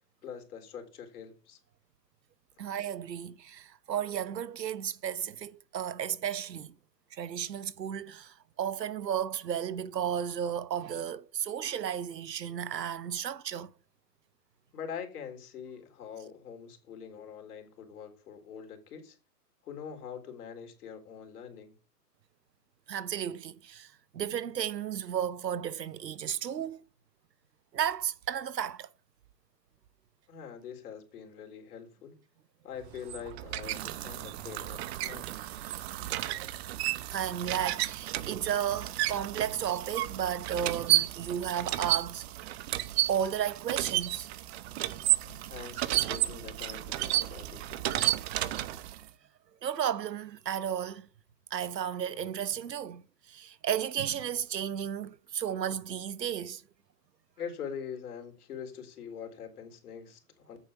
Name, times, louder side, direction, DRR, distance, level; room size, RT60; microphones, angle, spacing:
voice 1, 0.2-1.6 14.7-19.2 19.6-21.7 30.3-32.2 32.6-35.4 45.2-48.1 57.4-60.6, left 7 dB, 65° left, 4.0 m, -44 dB
voice 2, 2.6-6.7 7.1-13.7 22.9-26.8 27.7-28.9 36.2-36.4 37.1-42.3 43.1-44.3 49.6-51.1 51.5-56.6, right 9 dB, 90° right, 1.1 m, -33 dB
sound 1, 32.8-49.1, right 15 dB, 40° right, 1.0 m, -32 dB
8.9 x 7.0 x 7.1 m
hypercardioid pair, 135°, 48 cm